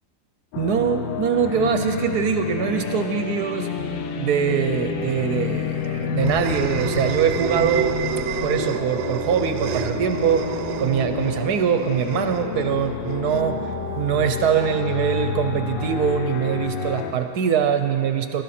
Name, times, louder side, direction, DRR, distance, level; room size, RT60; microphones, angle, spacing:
sound 1, 0.5-17.1, left 6 dB, 80° left, 1.5 m, -29 dB
voice 1, 0.6-3.7 4.2-8.0 8.4-10.5 10.8-13.6 14.0-18.4, right 7 dB, 65° right, 7 dB, 1.1 m, -23 dB
sound 2, 5.3-14.1, right 11 dB, 85° right, 1.3 m, -31 dB
18.0 x 12.0 x 4.3 m, 2.5 s
omnidirectional pair, 2.0 m